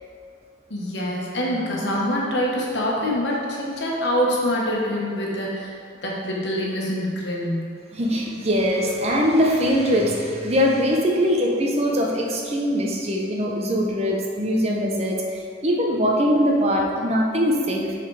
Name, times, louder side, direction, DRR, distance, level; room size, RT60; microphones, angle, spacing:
voice 1, 0.7-5.7 6.0-7.7, equal, 70° left, -3 dB, 1.4 m, -25 dB
voice 2, 7.9-17.9, equal, 35° right, -1 dB, 0.8 m, -22 dB
7.1 x 4.2 x 4.8 m, 2.3 s
head